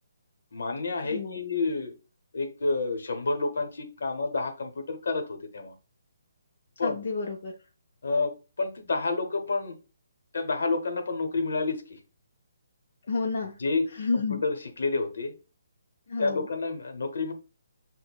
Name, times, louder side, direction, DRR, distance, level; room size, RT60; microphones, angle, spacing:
voice 1, 0.5-1.9 2.3-5.7 6.8-7.0 8.0-9.7 10.3-12.0 13.6-13.9 14.1-15.3 16.2-17.3, left 3 dB, 70° left, 6 dB, 0.8 m, -29 dB
voice 2, 1.0-1.4 6.8-7.5 13.0-13.6 13.9-14.4 16.1-16.5, left 4 dB, 50° left, 1 dB, 0.4 m, -30 dB
5.9 x 2.0 x 2.2 m, 0.33 s
hypercardioid pair, 165°, 0 cm